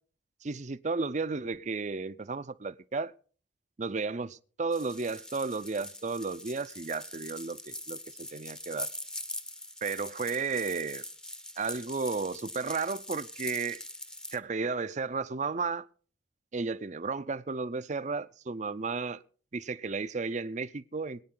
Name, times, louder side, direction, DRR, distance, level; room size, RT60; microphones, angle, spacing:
voice 1, 0.4-3.1 3.8-8.9 9.8-11.0 11.6-13.8 14.3-15.9 16.5-19.2 19.5-21.2, right 4 dB, 40° right, 0.5 m, -33 dB
sound 1, 4.7-14.4, left 1 dB, 5° left, 0.7 m, -42 dB
22.5 x 9.4 x 3.9 m
head